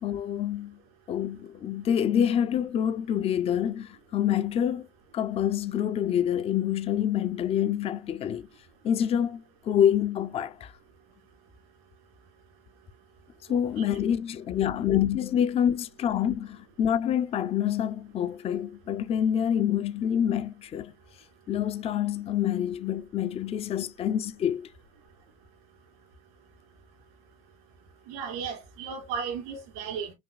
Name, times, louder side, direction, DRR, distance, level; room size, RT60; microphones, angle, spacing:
voice 1, 0.0-0.8 1.1-4.9 5.1-8.5 8.8-10.7 13.5-20.9 21.5-24.7, left 9 dB, 35° left, 0.5 m, -27 dB
voice 2, 13.5-14.0 28.1-30.1, right 6 dB, 85° right, 2.6 m, -35 dB
6.0 x 2.2 x 2.2 m
supercardioid pair, 105°, 18 cm